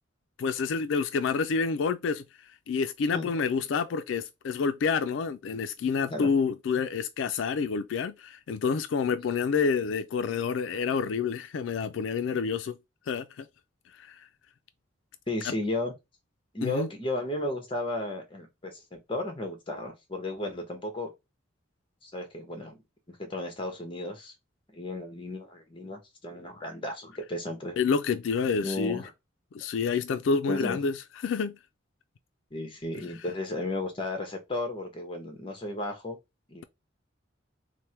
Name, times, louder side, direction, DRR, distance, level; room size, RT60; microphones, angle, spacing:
voice 1, 0.4-2.2 2.7-12.8 13.1-13.5 14.0-14.3 15.4-15.5 16.6-16.9 27.8-29.0 29.5-31.6, left 5 dB, 80° left, 0.3 m, -28 dB
voice 2, 15.3-15.9 16.5-21.1 22.0-22.7 23.1-24.3 24.7-27.8 28.6-29.1 30.5-30.8 32.5-36.2 36.5-36.6, left 2 dB, 25° left, 1.0 m, -34 dB
3.3 x 2.1 x 4.3 m
head